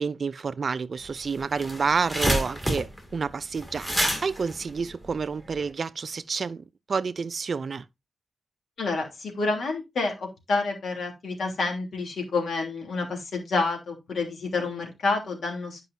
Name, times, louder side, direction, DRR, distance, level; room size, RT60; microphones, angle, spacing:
voice 1, 0.0-7.9, right 5 dB, 45° right, 0.3 m, -29 dB
sound 1, 1.0-1.1 1.4-5.6, equal, 5° left, 2.2 m, -29 dB
voice 2, 8.8-15.9, left 3 dB, 70° left, 3.0 m, -29 dB
11.0 x 5.4 x 2.6 m
wide cardioid pair, 150°, 0 cm